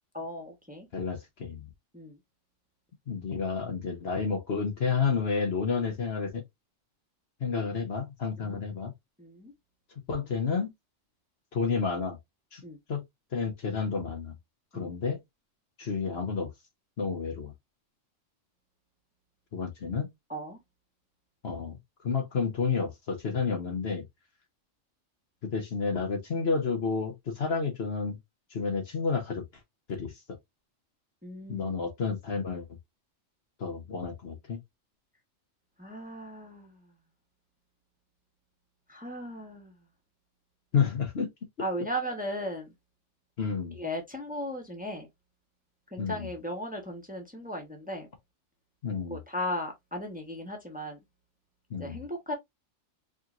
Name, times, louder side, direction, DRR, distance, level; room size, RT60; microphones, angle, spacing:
voice 1, 0.1-0.9 1.9-2.2 8.4-8.6 9.2-9.5 12.6-12.8 14.7-14.9 20.3-20.6 31.2-31.7 35.8-36.9 38.9-39.7 41.6-42.7 43.7-45.1 45.9-48.1 49.1-51.0 51.7-52.3, equal, 5° right, 1.1 m, -36 dB
voice 2, 0.9-1.7 3.1-6.4 7.4-8.9 10.1-10.7 11.5-12.2 12.5-12.6 12.9-13.0 13.3-14.4 14.7-15.2 15.8-16.5 17.0-17.5 19.5-20.1 21.4-21.8 22.0-24.0 25.4-28.2 28.5-29.4 29.9-30.4 31.5-32.7 33.6-34.6 40.7-41.3 41.6-41.7 43.4-43.8 46.0-46.3 48.8-49.2 51.7-52.0, left 5 dB, 55° left, 1.1 m, -30 dB
4.9 x 3.0 x 2.5 m
omnidirectional pair, 1.3 m